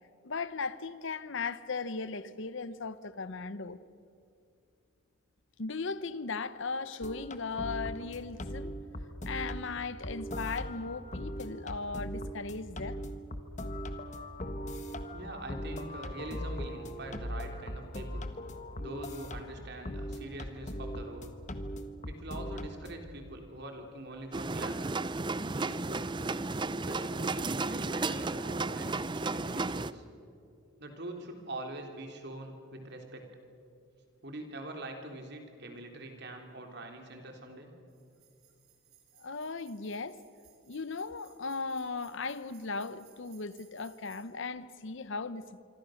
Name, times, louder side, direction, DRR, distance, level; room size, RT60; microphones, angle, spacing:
voice 1, 0.2-3.8 5.6-8.7 9.2-13.0 39.2-40.2 40.7-45.6, left 4 dB, 60° left, 0.8 m, -37 dB
sound 1, 7.0-23.1, equal, 35° left, 1.4 m, -40 dB
voice 2, 15.1-18.3 18.8-21.4 22.0-24.9 25.4-26.2 26.8-30.0 30.8-33.3 34.2-37.7, right 1 dB, 50° right, 3.4 m, -44 dB
sound 2, 24.3-29.9, right 3 dB, 20° right, 0.5 m, -33 dB
sound 3, 37.9-44.2, right 11 dB, 85° right, 5.5 m, -63 dB
26.0 x 25.0 x 6.5 m
head